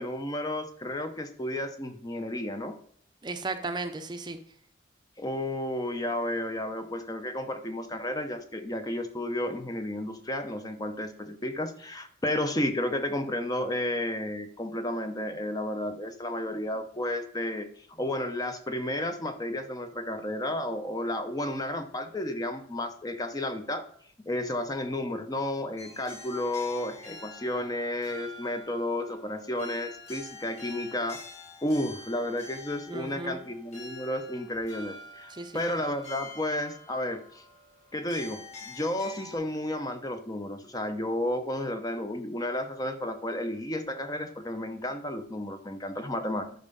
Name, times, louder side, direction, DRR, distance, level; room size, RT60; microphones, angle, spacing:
voice 1, 0.0-2.8 5.2-17.7 18.0-23.9 24.3-31.2 31.6-37.4 37.9-46.5, left 1 dB, 20° left, 8 dB, 0.7 m, -32 dB
voice 2, 3.2-4.4 32.9-33.4 35.3-35.6, right 3 dB, 25° right, 8 dB, 0.6 m, -35 dB
sound 1, 25.8-39.3, left 2 dB, 35° left, 4.3 m, -47 dB
10.5 x 5.5 x 5.3 m, 0.62 s
head